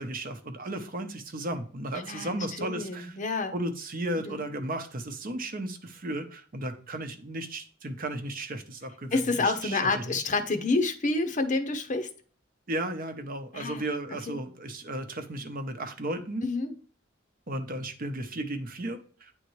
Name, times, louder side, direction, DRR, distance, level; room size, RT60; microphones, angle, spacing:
voice 1, 0.0-3.2 3.5-10.2 12.7-16.4 17.5-19.3, right 1 dB, 45° right, 6 dB, 0.8 m, -35 dB
voice 2, 1.9-3.5 4.3-4.4 9.1-12.1 13.5-13.8 14.3-14.4 16.4-16.8, left 3 dB, 40° left, 7 dB, 0.7 m, -28 dB
9.2 x 3.6 x 3.1 m, 0.43 s
head